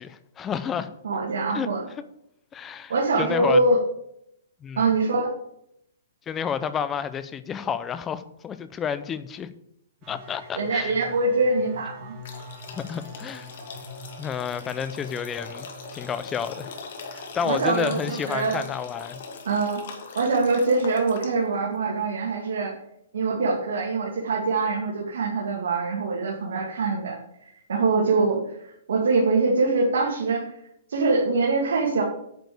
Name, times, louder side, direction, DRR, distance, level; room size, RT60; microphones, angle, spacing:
voice 1, 0.0-0.9 1.5-1.7 2.5-3.6 4.6-4.8 6.3-9.5 10.1-10.9 12.7-13.5 14.2-15.7 15.9-16.7 17.1-19.2, left 7 dB, 15° left, 0.6 m, -30 dB
voice 2, 1.0-1.8 2.9-3.8 4.8-5.3 10.5-12.1 17.4-18.6 19.4-19.8 20.1-22.7 23.1-27.2 27.7-30.6 30.9-32.0, right 3 dB, 80° right, 2.3 m, -23 dB
sound 1, 10.0-18.6 18.9-19.4, left 1 dB, 30° right, 2.2 m, -46 dB
sound 2, 12.2-21.6, left 4 dB, 60° left, 2.4 m, -41 dB
9.3 x 5.2 x 7.8 m
hypercardioid pair, 155°, 0 cm